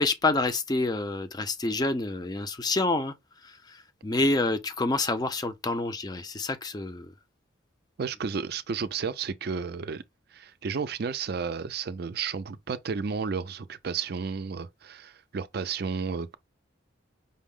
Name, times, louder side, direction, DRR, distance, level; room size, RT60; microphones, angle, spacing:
voice 1, 0.0-3.1 3.4-3.5 4.0-7.1, left 2 dB, 20° left, 0.4 m, -27 dB
voice 2, 8.0-10.0 10.3-16.3, right 5 dB, 50° right, 0.4 m, -32 dB
5.3 x 2.0 x 3.6 m
head